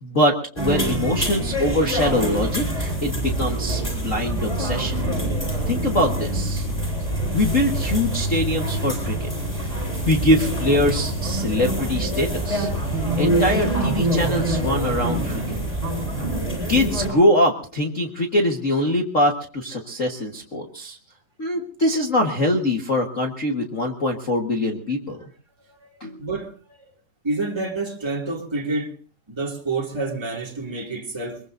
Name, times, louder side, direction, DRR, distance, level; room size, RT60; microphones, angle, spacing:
voice 1, 0.0-5.0 5.7-6.6 7.3-9.3 10.0-12.7 13.2-15.6 16.7-21.0 21.4-25.2 26.0-26.2, left 1 dB, 80° left, 0.7 m, -23 dB
sound 1, 0.6-17.1, right 1 dB, 10° left, 7.5 m, -25 dB
voice 2, 26.2-26.9 27.2-28.9 29.3-31.4, right 3 dB, 10° right, 1.9 m, -28 dB
23.5 x 22.5 x 2.6 m
omnidirectional pair, 3.9 m